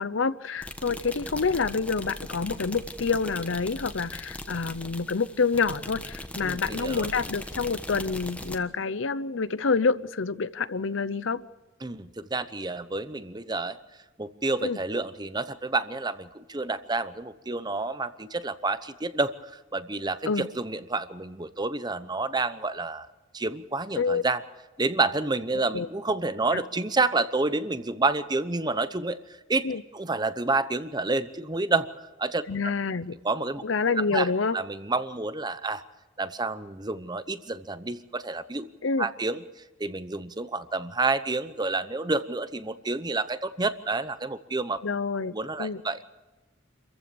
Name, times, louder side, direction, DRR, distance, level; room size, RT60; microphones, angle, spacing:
voice 1, 0.0-11.4 14.6-14.8 20.3-20.5 23.9-24.2 25.5-25.9 26.5-26.6 29.6-29.8 32.5-33.1 33.6-34.6 38.8-39.1 44.8-45.8, left 4 dB, 75° left, 16 dB, 0.7 m, -27 dB
sound 1, 0.6-8.6, left 1 dB, 5° left, 1.3 m, -39 dB
voice 2, 6.4-7.1 11.8-13.8 14.2-23.1 23.3-24.4 24.8-29.2 29.5-29.7 29.9-31.9 32.2-32.7 33.2-33.6 34.1-35.8 36.2-38.7 39.0-39.4 39.8-44.8 45.3-46.0, right 3 dB, 20° right, 13 dB, 0.8 m, -29 dB
27.0 x 15.0 x 7.0 m, 1.2 s
head